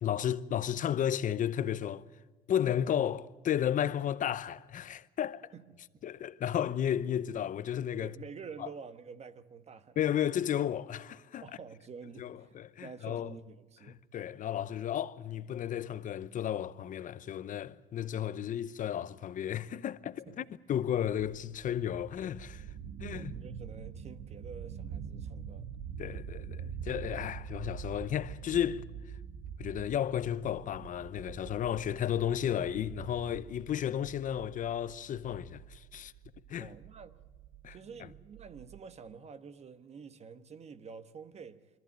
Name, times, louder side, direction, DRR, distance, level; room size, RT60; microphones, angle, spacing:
voice 1, 0.0-2.0 2.5-5.5 6.0-8.1 8.6-8.7 10.0-11.4 12.2-13.3 14.1-22.6 23.0-23.3 26.0-28.8 29.6-36.1 36.5-36.7 37.6-37.8, left 10 dB, 50° left, 0.7 m, -33 dB
voice 2, 5.5-5.8 8.0-10.0 11.4-12.5 12.8-14.0 20.3-20.6 23.1-25.7 36.6-37.2 37.7-41.7, right 5 dB, 40° right, 1.2 m, -48 dB
sound 1, 21.1-38.8, right 8 dB, 75° right, 1.0 m, -45 dB
24.5 x 14.0 x 9.1 m
cardioid pair, 110°, 17 cm